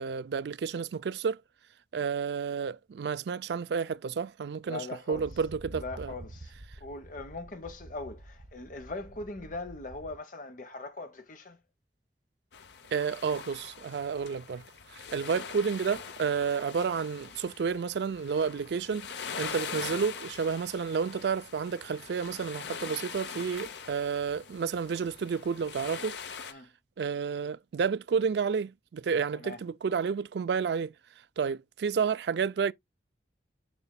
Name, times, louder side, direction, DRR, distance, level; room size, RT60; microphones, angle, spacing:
voice 1, 0.0-1.4 1.9-6.1 12.9-14.6 14.9-19.1 19.4-26.1 27.0-30.9 31.4-32.7, right 6 dB, 65° right, 0.4 m, -31 dB
voice 2, 4.6-5.3 5.7-6.5 6.8-11.6 26.5-26.7 29.3-29.6, left 3 dB, 45° left, 1.1 m, -40 dB
sound 1, 5.1-10.2, right 1 dB, 50° right, 0.8 m, -48 dB
sound 2, 12.5-26.5, left 6 dB, 75° left, 0.7 m, -43 dB
6.9 x 6.8 x 2.2 m
head